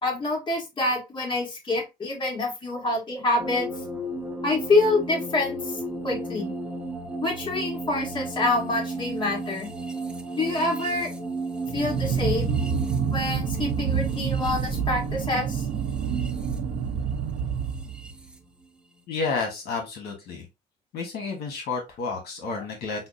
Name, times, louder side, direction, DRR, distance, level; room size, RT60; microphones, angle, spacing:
voice 1, 0.0-3.7 4.4-6.5 7.2-9.7 10.3-11.1 11.7-12.6 13.1-15.7 22.6-22.7, left 2 dB, 30° left, 1.8 m, -26 dB
sound 1, 3.4-18.4, right 1 dB, 5° right, 0.7 m, -35 dB
sound 2, 11.7-18.2, right 7 dB, 65° right, 0.6 m, -28 dB
voice 2, 19.1-20.4 20.9-23.1, left 4 dB, 70° left, 1.3 m, -31 dB
5.6 x 2.2 x 2.6 m
cardioid pair, 110°, 17 cm